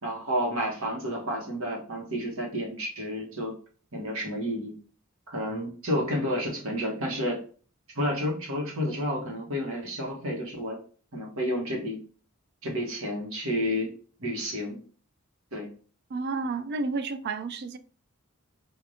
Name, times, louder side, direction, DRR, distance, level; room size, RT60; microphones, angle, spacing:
voice 1, 0.0-3.5 3.9-4.7 5.3-7.4 7.9-10.8 11.1-12.0 12.6-13.9 14.2-14.8 15.5-15.7, equal, 75° right, 1.2 m, -30 dB
voice 2, 16.1-17.8, right 3 dB, 50° right, 0.3 m, -31 dB
4.8 x 2.5 x 2.7 m
head